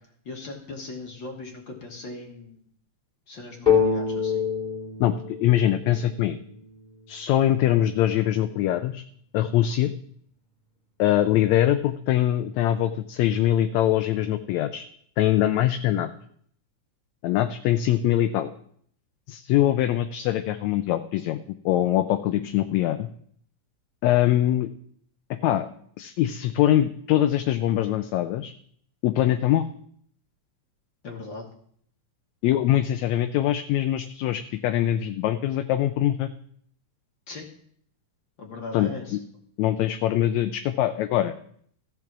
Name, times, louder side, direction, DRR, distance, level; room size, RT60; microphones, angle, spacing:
voice 1, 0.2-2.6 3.3-4.4 31.0-31.5 37.3-37.5 38.4-39.2, left 3 dB, 45° left, 1 dB, 1.8 m, -38 dB
sound 1, 3.7-7.3, left 7 dB, ahead, 2.6 m, -26 dB
voice 2, 5.4-6.4 7.1-9.0 9.3-9.9 11.0-14.8 15.2-16.1 17.2-18.5 19.3-21.4 21.6-23.1 24.0-24.7 25.4-25.7 26.0-28.5 29.0-29.6 32.4-36.3 38.7-39.2 39.6-41.3, left 12 dB, 80° left, 9 dB, 1.7 m, -23 dB
14.5 x 5.9 x 6.0 m, 0.63 s
omnidirectional pair, 3.5 m